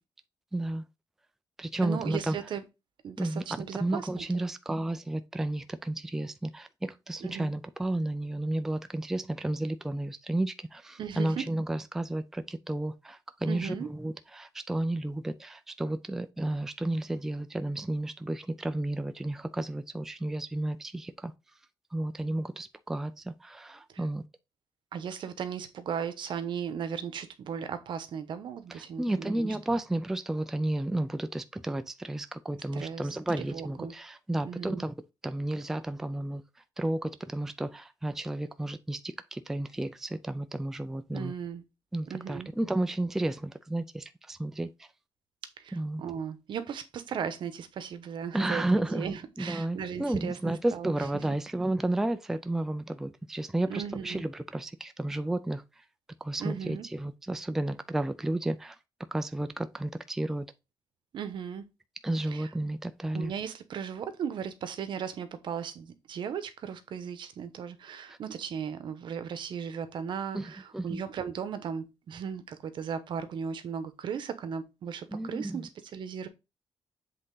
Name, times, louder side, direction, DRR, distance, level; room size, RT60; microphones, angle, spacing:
voice 1, 0.5-0.8 1.6-2.4 3.2-3.4 3.8-21.3 21.9-24.2 28.7-34.9 35.2-36.4 36.8-41.3 41.9-44.9 45.7-46.0 48.3-55.6 56.2-58.8 59.1-60.5 62.0-63.3 68.1-68.2 70.3-70.5 70.7-71.0 75.1-75.7, right 1 dB, 5° right, 0.4 m, -32 dB
voice 2, 1.8-2.6 3.0-4.5 7.2-7.5 11.0-11.5 13.5-13.9 23.9-24.0 24.9-29.6 32.7-33.1 33.4-33.9 34.4-34.8 41.1-41.6 42.1-42.5 45.6-51.3 53.7-54.2 56.4-56.9 61.1-61.6 62.2-62.5 63.1-76.3, right 7 dB, 65° right, 1.0 m, -37 dB
7.8 x 3.6 x 3.9 m
wide cardioid pair, 175°, 9 cm